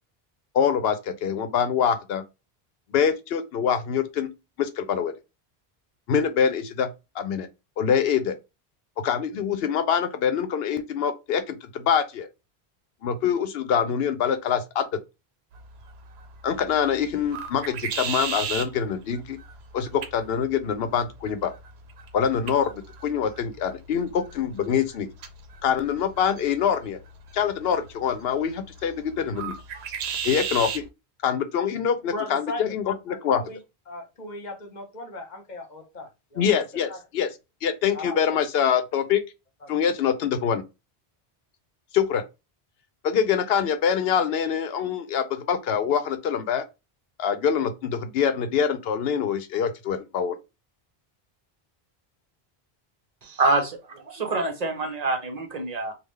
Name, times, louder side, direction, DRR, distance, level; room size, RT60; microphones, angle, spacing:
voice 1, 0.5-2.2 2.9-4.3 4.6-5.1 6.1-7.5 7.8-8.3 9.0-12.3 13.0-14.9 16.4-19.4 19.7-21.5 22.1-25.1 25.6-27.0 27.3-29.6 30.2-30.8 31.2-33.4 36.4-37.3 37.6-39.2 39.7-40.6 41.9-42.2 43.0-46.6 47.2-50.4, left 7 dB, 75° left, 0.8 m, -25 dB
sound 1, 15.5-30.9, right 6 dB, 85° right, 0.9 m, -37 dB
voice 2, 32.1-32.7 33.3-33.6 33.9-36.6 36.9-37.0 37.9-38.2 39.6-39.7, left 2 dB, 45° left, 1.0 m, -37 dB
voice 3, 53.2-55.9, right 3 dB, 40° right, 1.0 m, -26 dB
3.5 x 2.3 x 3.1 m
omnidirectional pair, 1.0 m